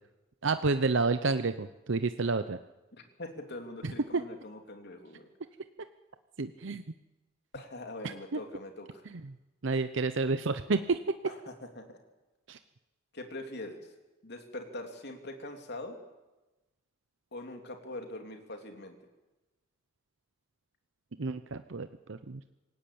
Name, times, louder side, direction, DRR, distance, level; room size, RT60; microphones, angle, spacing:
voice 1, 0.4-2.6 3.8-4.2 6.4-6.8 8.0-8.4 9.1-9.3 9.6-11.0 12.5-12.6 21.2-22.5, right 3 dB, 65° right, 10 dB, 0.8 m, -30 dB
voice 2, 2.9-5.3 7.5-9.0 11.3-12.0 13.1-13.9 14.2-16.0 17.3-19.0, left 1 dB, 55° left, 4 dB, 3.3 m, -43 dB
26.5 x 17.5 x 8.6 m, 1.1 s
head